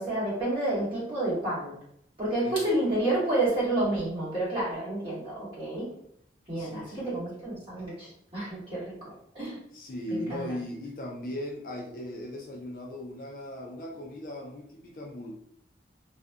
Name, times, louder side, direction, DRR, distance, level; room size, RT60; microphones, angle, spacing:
voice 1, 0.0-1.7 2.2-5.9 6.5-9.6 10.1-10.5, right 1 dB, 30° right, -9 dB, 1.4 m, -30 dB
voice 2, 2.4-2.9 6.6-7.2 9.7-15.3, left 1 dB, 50° left, 0 dB, 0.4 m, -38 dB
2.5 x 2.5 x 2.2 m, 0.71 s
head